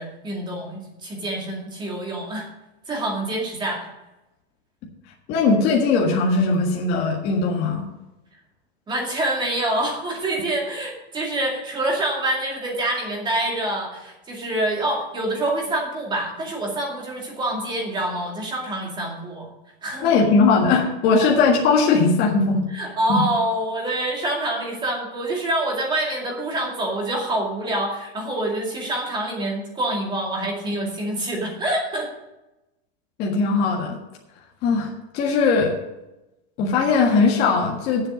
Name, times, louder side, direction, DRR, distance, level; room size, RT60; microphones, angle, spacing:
voice 1, 0.0-2.5 2.9-3.9 8.9-19.5 19.8-20.1 21.2-21.3 22.7-32.1, right 1 dB, 15° right, 0 dB, 2.2 m, -26 dB
voice 2, 5.3-7.8 20.0-22.7 23.1-23.2 33.2-34.0 34.6-34.9 35.1-35.7 36.6-38.1, left 4 dB, 30° left, -2 dB, 1.7 m, -19 dB
9.6 x 7.8 x 6.4 m, 0.96 s
supercardioid pair, 165°, 32 cm